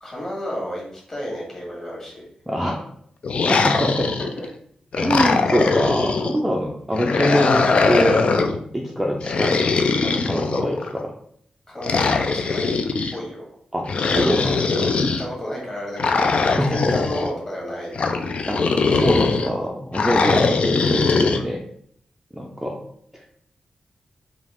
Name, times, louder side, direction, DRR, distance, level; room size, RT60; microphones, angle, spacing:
voice 1, 0.0-2.3 4.2-4.5 11.7-12.7 13.1-13.5 15.2-16.3 16.7-18.0, equal, 25° left, -3 dB, 1.6 m, -32 dB
voice 2, 2.5-2.9 3.5-4.1 5.0-9.7 10.0-11.1 13.7-15.0 16.4-16.8 18.5-21.6 22.3-22.8, equal, 5° right, -2 dB, 0.4 m, -24 dB
sound 1, 3.2-4.5 4.9-6.4 6.9-8.6 9.2-10.9 11.8-13.1 13.9-15.2 16.0-17.3 17.9-19.5 19.9-21.4, left 4 dB, 55° left, 0.4 m, -21 dB
5.0 x 2.5 x 3.5 m, 0.65 s
wide cardioid pair, 170°, 2 cm